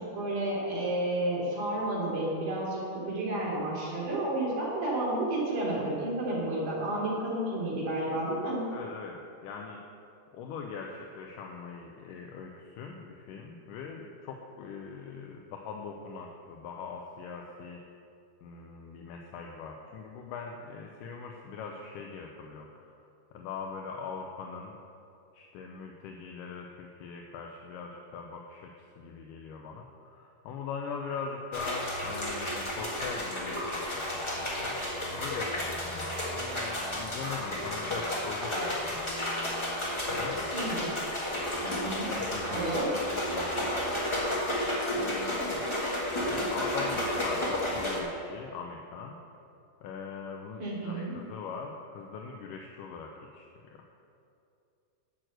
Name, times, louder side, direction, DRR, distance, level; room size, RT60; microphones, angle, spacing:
voice 1, 0.0-8.6 40.5-40.9 41.6-42.1 42.5-43.0 50.6-51.1, right 1 dB, 65° right, -6 dB, 4.5 m, -31 dB
voice 2, 8.7-9.8 10.3-17.8 18.4-24.7 25.3-34.8 35.2-39.0 40.1-40.5 42.1-42.7 42.9-43.5 43.9-44.0 44.9-45.7 46.2-49.2 49.8-53.5, left 5 dB, 80° left, 1 dB, 2.3 m, -41 dB
sound 1, 31.5-48.0, left 1 dB, 25° left, 0.6 m, -32 dB
11.5 x 6.2 x 7.9 m, 2.5 s
omnidirectional pair, 3.8 m